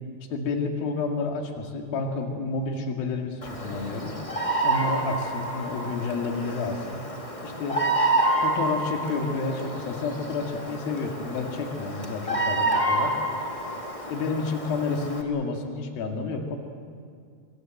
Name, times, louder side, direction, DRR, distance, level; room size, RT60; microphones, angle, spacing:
voice 1, 0.3-4.2 4.6-7.0 7.4-7.8 8.4-13.1 14.1-16.6, left 4 dB, 60° left, 3 dB, 3.8 m, -30 dB
Bird vocalization bird call bird song, 3.4-15.2, right 2 dB, 35° left, 0.5 m, -28 dB
25.0 x 23.0 x 7.9 m, 2.2 s
omnidirectional pair, 4.9 m